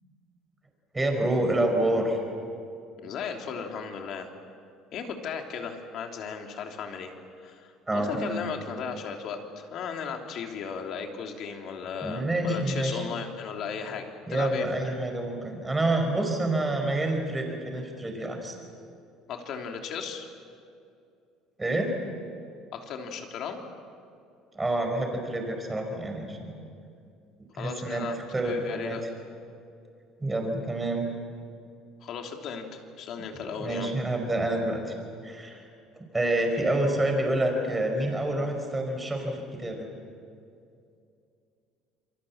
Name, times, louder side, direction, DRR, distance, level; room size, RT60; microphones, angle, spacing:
voice 1, 0.9-2.2 7.9-8.4 12.0-13.1 14.3-18.5 21.6-21.9 24.5-26.5 27.5-29.0 30.2-31.0 33.6-34.8 35.2-35.6 36.1-39.9, right 1 dB, 15° right, 3 dB, 5.1 m, -28 dB
voice 2, 3.0-4.3 4.9-7.1 7.4-14.7 19.3-20.3 22.7-23.6 27.5-28.2 28.4-29.0 32.0-33.9, left 6 dB, 55° left, 3 dB, 3.2 m, -36 dB
28.0 x 23.5 x 7.4 m, 2.5 s
cardioid pair, 130°, 0 cm